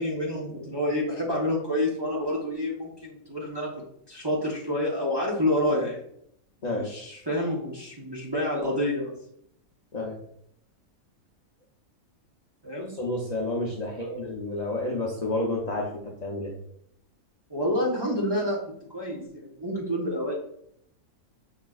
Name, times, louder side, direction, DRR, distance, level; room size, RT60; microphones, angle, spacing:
voice 1, 0.0-6.0 6.6-9.1 12.6-12.9 13.9-14.2 17.5-18.6 18.9-20.4, left 1 dB, 25° right, -4 dB, 0.6 m, -28 dB
voice 2, 12.9-16.5, left 2 dB, 45° left, -2 dB, 0.5 m, -30 dB
5.8 x 3.2 x 2.3 m, 0.71 s
omnidirectional pair, 1.5 m